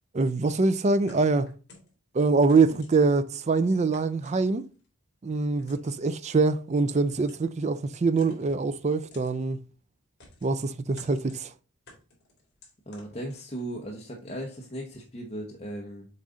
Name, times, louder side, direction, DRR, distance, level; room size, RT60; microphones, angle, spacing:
voice 1, 0.1-1.5 2.1-4.6 5.2-9.6 10.4-11.5, right 3 dB, 30° right, 0.4 m, -24 dB
sound 1, 1.1-1.9 2.5-3.2 3.9-4.9 5.6-6.1 6.9-7.6 8.2-8.7 9.1-9.4 10.2-10.6 11.0-11.5 11.9-13.7, left 2 dB, 50° left, 3.1 m, -52 dB
voice 2, 12.9-16.1, right 1 dB, 30° left, 0.9 m, -37 dB
7.3 x 3.9 x 3.7 m
head